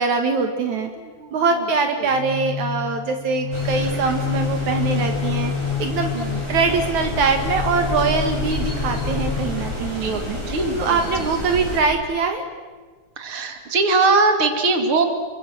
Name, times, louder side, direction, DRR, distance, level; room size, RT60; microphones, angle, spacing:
voice 1, 0.0-0.9 1.3-5.5 5.8-6.1 6.5-12.4, right 4 dB, 70° right, 5 dB, 3.0 m, -23 dB
voice 2, 1.0-1.6 2.0-2.1 4.0-4.1 4.9-5.1 6.1-6.4 10.0-11.3 13.2-15.1, right 3 dB, 45° right, 6 dB, 3.3 m, -22 dB
sound 1, 2.1-10.0, left 8 dB, 65° left, 3.5 m, -28 dB
sound 2, 3.5-11.8, left 1 dB, 10° right, 6.7 m, -30 dB
29.5 x 24.0 x 7.7 m, 1.4 s
omnidirectional pair, 3.4 m